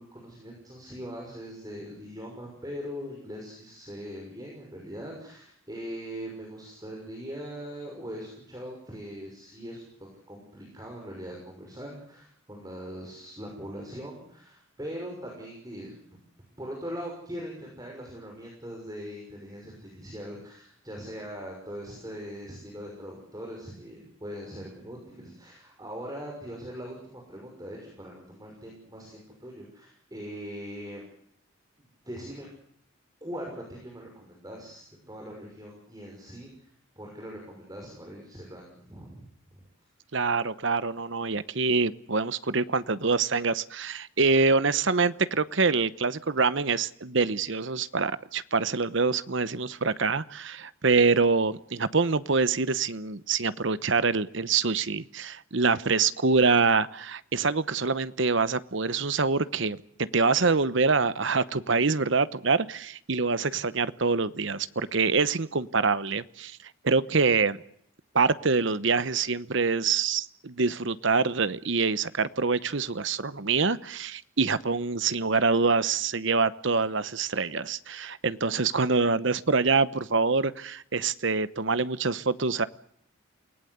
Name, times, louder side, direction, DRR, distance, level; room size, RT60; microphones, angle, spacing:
voice 1, 0.0-9.9 10.3-16.2 16.6-31.0 32.0-32.5 33.2-36.5 37.0-39.6, equal, 15° right, -1 dB, 6.2 m, -41 dB
voice 2, 40.1-59.8 60.1-66.6 66.8-67.6 68.1-82.6, right 4 dB, 60° right, 15 dB, 1.0 m, -25 dB
29.0 x 18.5 x 8.1 m, 0.67 s
head